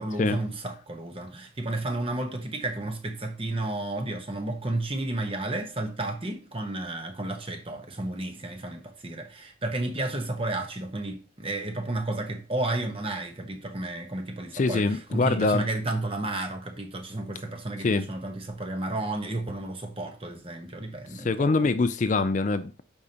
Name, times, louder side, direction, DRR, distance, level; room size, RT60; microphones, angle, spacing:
voice 1, 0.0-21.7, right 2 dB, 30° right, 1.0 m, -32 dB
voice 2, 14.5-15.7 17.8-18.1 21.1-22.8, left 3 dB, 40° left, 0.4 m, -24 dB
8.4 x 5.3 x 2.9 m
head